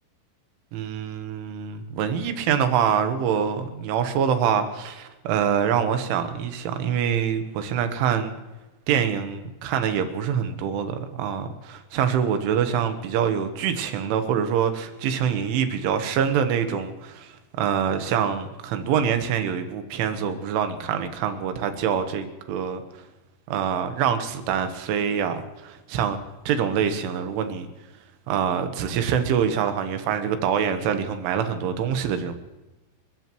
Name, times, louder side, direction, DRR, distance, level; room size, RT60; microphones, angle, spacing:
voice 1, 0.7-8.3 8.9-22.8 23.5-26.2 26.5-27.7 28.3-32.3, right 8 dB, 80° right, 8 dB, 3.7 m, -25 dB
29.5 x 14.0 x 3.1 m, 1.1 s
omnidirectional pair, 5.5 m